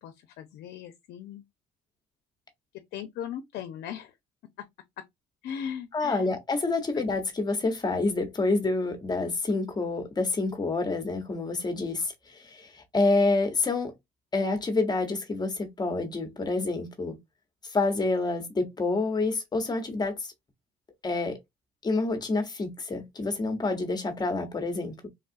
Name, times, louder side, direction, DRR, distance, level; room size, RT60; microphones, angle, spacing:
voice 1, 0.0-1.4 2.9-4.1 5.4-6.4 6.9-7.0, left 9 dB, 75° left, 0.6 m, -38 dB
voice 2, 5.9-13.9 14.3-17.2 17.7-20.3 21.0-21.4 21.8-25.1, left 3 dB, 25° left, 1.0 m, -28 dB
3.6 x 2.3 x 2.5 m
cardioid pair, 110°, 17 cm